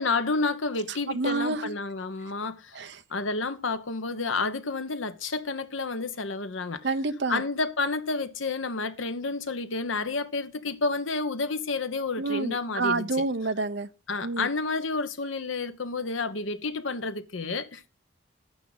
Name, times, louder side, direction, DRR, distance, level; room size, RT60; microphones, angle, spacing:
voice 1, 0.0-6.9 7.3-13.1 14.1-17.8, left 3 dB, 85° left, 1.1 m, -30 dB
voice 2, 1.1-1.7 2.7-3.0 6.8-7.4 12.2-13.9 14.2-14.5, right 3 dB, 65° right, 0.8 m, -28 dB
11.0 x 9.1 x 4.0 m
head